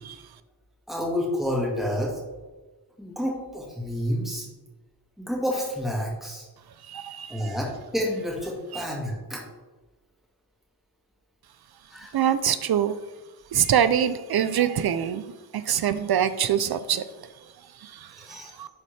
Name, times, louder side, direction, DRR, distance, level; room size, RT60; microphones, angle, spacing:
voice 1, 0.9-2.2 3.0-4.5 5.2-6.5 7.3-9.4 11.9-12.1 18.2-18.5, equal, ahead, -3 dB, 2.0 m, -29 dB
voice 2, 6.8-7.6 8.7-8.8 12.1-13.0 13.5-18.7, right 9 dB, 70° right, 12 dB, 0.5 m, -25 dB
11.5 x 4.2 x 3.3 m, 1.2 s
wide cardioid pair, 80°, 39 cm